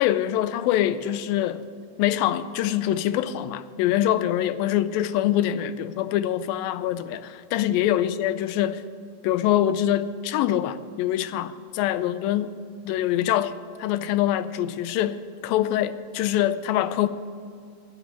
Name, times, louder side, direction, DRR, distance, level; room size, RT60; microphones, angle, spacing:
voice 1, 0.0-1.6 2.0-8.8 9.2-12.6 12.8-13.5 13.8-17.1, left 12 dB, 85° left, 2.4 m, -24 dB
9.3 x 9.2 x 9.6 m
omnidirectional pair, 4.0 m